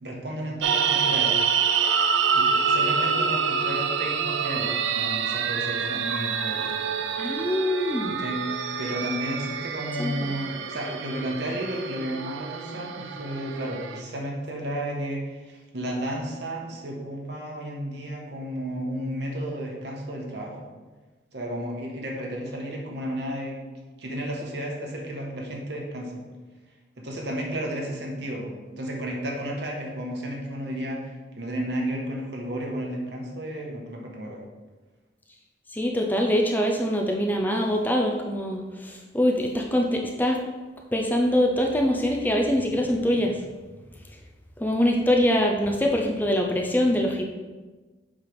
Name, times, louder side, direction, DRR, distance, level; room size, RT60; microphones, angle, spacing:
voice 1, 0.0-1.4 2.3-6.9 8.1-20.7 21.3-23.6 24.0-26.2 27.0-34.5, equal, 65° right, -1 dB, 1.3 m, -33 dB
sound 1, 0.6-14.0, right 6 dB, 80° right, 0.5 m, -27 dB
voice 2, 7.2-8.1 10.0-10.3 35.7-40.4 40.9-43.4 44.6-47.3, equal, 10° left, 1 dB, 0.5 m, -24 dB
7.3 x 3.3 x 5.1 m, 1.3 s
head